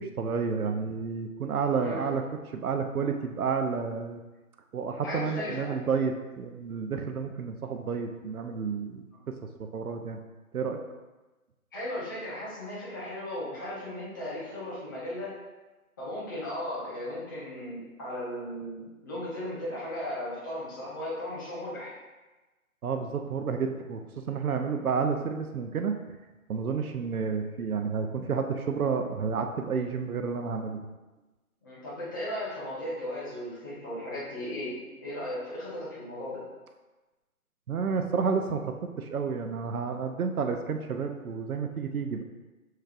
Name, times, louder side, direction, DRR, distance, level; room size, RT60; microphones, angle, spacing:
voice 1, 0.0-2.2 2.5-4.2 4.7-9.1 9.7-10.2 10.5-10.8 22.8-25.9 26.5-30.8 37.7-42.2, right 5 dB, 70° right, 5 dB, 0.6 m, -30 dB
voice 2, 1.8-2.1 5.0-5.8 11.7-15.3 16.0-21.9 31.6-34.7 35.0-36.4, left 1 dB, 15° left, -10 dB, 0.8 m, -36 dB
6.5 x 3.2 x 2.4 m, 1.2 s
figure-of-eight pair, 155°, 45 cm